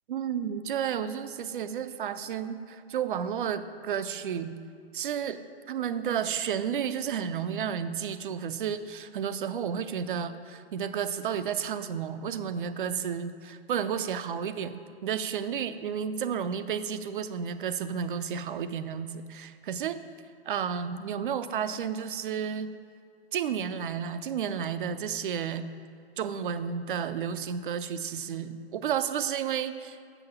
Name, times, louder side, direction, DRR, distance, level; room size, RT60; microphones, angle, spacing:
voice 1, 0.1-4.5 4.9-20.0 20.5-22.7 23.3-25.7 26.2-30.0, right 8 dB, 50° right, 11 dB, 0.6 m, -32 dB
7.0 x 6.2 x 6.9 m, 2.3 s
figure-of-eight pair, 130°, 33 cm